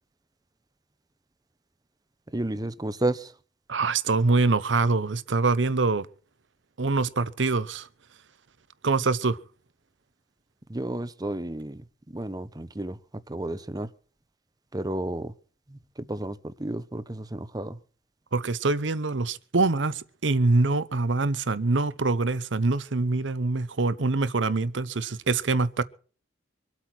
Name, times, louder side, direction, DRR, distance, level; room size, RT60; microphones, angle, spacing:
voice 1, 2.3-3.3 10.7-13.0 13.3-13.9 14.7-15.3 15.7-17.8, right 1 dB, 20° right, 0.8 m, -32 dB
voice 2, 3.7-6.1 6.8-7.9 8.8-9.4 18.3-25.8, right 3 dB, 75° right, 0.8 m, -24 dB
24.5 x 8.4 x 6.1 m
head